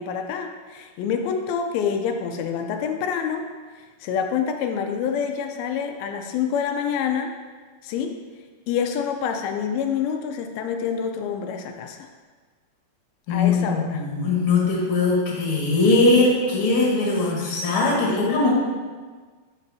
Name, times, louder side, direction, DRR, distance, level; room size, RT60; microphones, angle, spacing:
voice 1, 0.0-3.5 4.0-7.4 7.8-8.2 8.7-12.1 13.3-14.0 18.1-18.5, left 7 dB, 90° left, 4 dB, 2.4 m, -27 dB
voice 2, 13.3-18.5, left 3 dB, 45° left, -5 dB, 2.3 m, -20 dB
11.5 x 5.3 x 2.7 m, 1.4 s
omnidirectional pair, 4.2 m